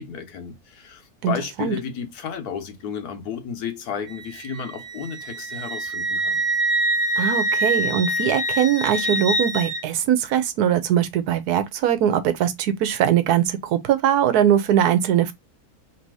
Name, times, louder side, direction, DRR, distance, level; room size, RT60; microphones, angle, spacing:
voice 1, 0.0-6.4, left 7 dB, 80° left, 1.4 m, -33 dB
voice 2, 1.2-1.7 7.2-15.3, right 10 dB, 80° right, 1.2 m, -21 dB
Wind instrument woodwind instrument, 4.1-9.8, right 1 dB, 10° right, 0.7 m, -25 dB
3.2 x 2.7 x 4.6 m
omnidirectional pair, 1.6 m